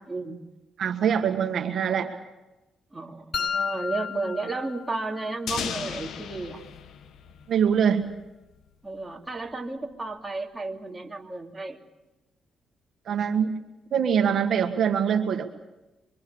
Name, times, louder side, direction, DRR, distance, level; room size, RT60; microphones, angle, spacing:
voice 1, 0.1-0.4 2.9-6.6 8.8-11.8, right 3 dB, 15° right, 0 dB, 3.0 m, -33 dB
voice 2, 0.8-2.2 7.5-8.1 13.1-13.5 13.9-15.5, right 7 dB, 60° right, 5 dB, 1.7 m, -23 dB
sound 1, 3.3-5.3, left 6 dB, 45° left, 0.8 m, -32 dB
sound 2, 5.5-8.2, left 8 dB, 70° left, 1.2 m, -36 dB
25.5 x 24.0 x 7.1 m, 1.0 s
cardioid pair, 90°, 0 cm